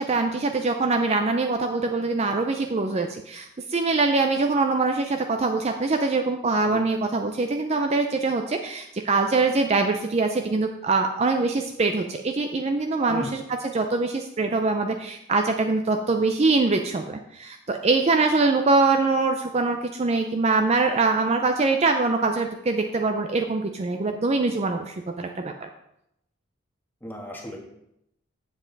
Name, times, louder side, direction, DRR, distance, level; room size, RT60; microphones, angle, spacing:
voice 1, 0.0-25.5, right 3 dB, 30° right, 5 dB, 0.4 m, -23 dB
voice 2, 27.0-27.6, left 1 dB, 10° left, 0 dB, 1.4 m, -35 dB
7.8 x 7.2 x 4.0 m, 0.80 s
head